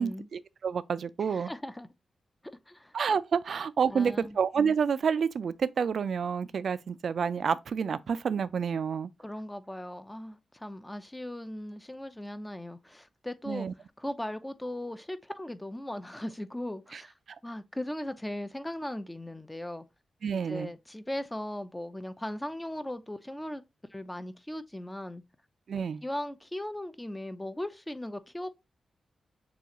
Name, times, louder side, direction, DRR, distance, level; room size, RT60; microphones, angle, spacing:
voice 1, 0.0-1.5 2.9-9.1 13.5-13.7 16.9-17.0 20.2-20.7 25.7-26.0, right 6 dB, 65° right, 0.4 m, -29 dB
voice 2, 1.2-1.9 2.4-2.9 3.9-4.4 9.2-13.7 14.0-17.1 17.4-19.9 20.3-23.6 23.9-25.2 25.8-28.5, left 1 dB, 10° left, 0.6 m, -38 dB
6.9 x 2.4 x 3.0 m
cardioid pair, 95°, 0 cm